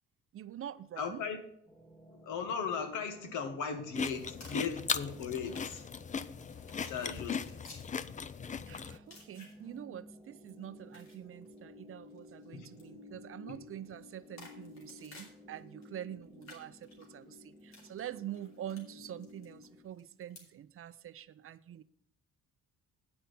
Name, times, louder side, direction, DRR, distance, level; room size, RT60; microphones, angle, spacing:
voice 1, 0.3-1.2 8.7-21.8, right 11 dB, 45° right, 0.5 m, -45 dB
voice 2, 1.0-1.4 2.1-5.8 6.9-7.8 12.5-12.7 13.5-13.6, left 5 dB, 80° left, 1.4 m, -37 dB
sound 1, 1.7-19.8, left 2 dB, 5° left, 1.7 m, -56 dB
sound 2, 3.9-9.0, left 6 dB, 25° left, 0.4 m, -38 dB
sound 3, 4.4-4.7 5.4-8.4 9.1-9.8 10.5-11.6 12.1-12.5 12.7-12.9 13.8-15.8 16.2-20.4, left 3 dB, 65° left, 2.9 m, -55 dB
8.8 x 5.8 x 7.0 m
cardioid pair, 90°, 30 cm